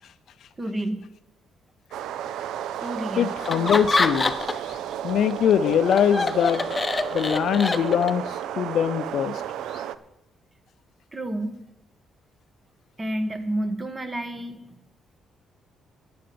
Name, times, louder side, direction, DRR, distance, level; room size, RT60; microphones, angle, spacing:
voice 1, 0.6-1.1 2.8-3.3 11.1-11.6 13.0-14.6, right 1 dB, 25° right, 9 dB, 1.5 m, -29 dB
sound 1, 1.9-10.0, right 10 dB, 80° right, 0.5 m, -33 dB
voice 2, 3.2-4.3 5.0-6.7 7.1-8.3 8.6-9.4, left 8 dB, 70° left, 15 dB, 0.5 m, -22 dB
Laughter, 3.4-4.7 5.1-8.3, left 3 dB, 25° left, 0.8 m, -26 dB
11.5 x 8.7 x 6.9 m, 0.89 s
cardioid pair, 90°, 0 cm